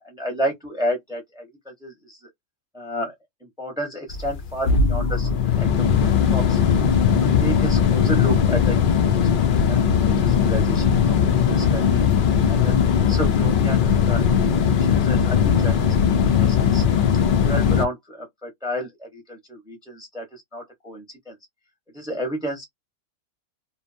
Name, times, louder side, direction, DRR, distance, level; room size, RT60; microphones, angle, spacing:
voice 1, 0.0-2.2 2.7-3.1 3.4-5.7 6.0-6.6 7.0-9.1 9.4-12.0 12.5-14.2 14.8-16.0 16.3-16.8 17.4-21.4 21.9-22.6, equal, 5° right, 0.7 m, -31 dB
sound 1, 4.1-17.9, left 7 dB, 90° left, 0.4 m, -19 dB
2.7 x 2.2 x 2.5 m
omnidirectional pair, 1.5 m